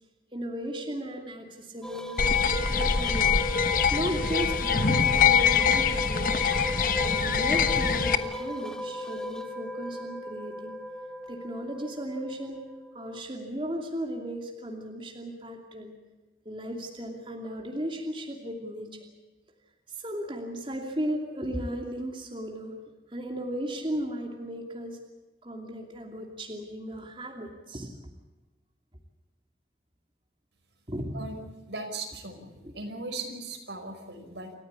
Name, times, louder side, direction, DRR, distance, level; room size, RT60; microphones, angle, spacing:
voice 1, 0.3-2.2 2.8-3.4 3.9-6.6 7.1-10.8 11.3-12.7 12.9-16.0 16.4-19.0 19.9-22.8 23.1-25.0 25.4-27.9 30.9-31.1 32.6-32.7, equal, 30° right, 2 dB, 2.7 m, -35 dB
sound 1, 1.8-13.2, equal, 5° left, 1.4 m, -37 dB
sound 2, 2.2-8.2, left 6 dB, 50° left, 1.2 m, -24 dB
voice 2, 31.7-34.5, right 3 dB, 85° right, 4 dB, 5.6 m, -38 dB
28.0 x 14.5 x 8.3 m, 1.2 s
head